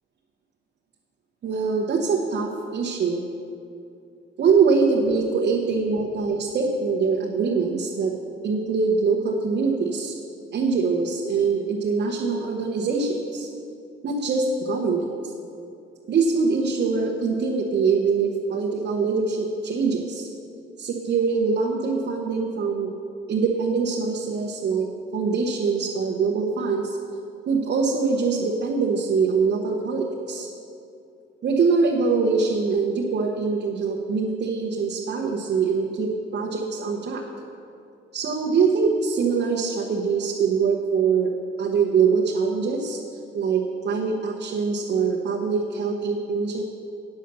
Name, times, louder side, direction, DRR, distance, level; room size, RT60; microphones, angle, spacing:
voice 1, 1.4-3.2 4.4-8.1 8.4-10.1 10.5-13.5 14.0-15.3 16.1-20.3 20.8-22.9 23.3-27.0 27.5-30.5 31.4-37.2 38.1-41.3 41.6-43.0 43.3-46.7, right 5 dB, 60° right, 0 dB, 1.0 m, -23 dB
9.3 x 6.7 x 6.7 m, 2.6 s
cardioid pair, 90°, 20 cm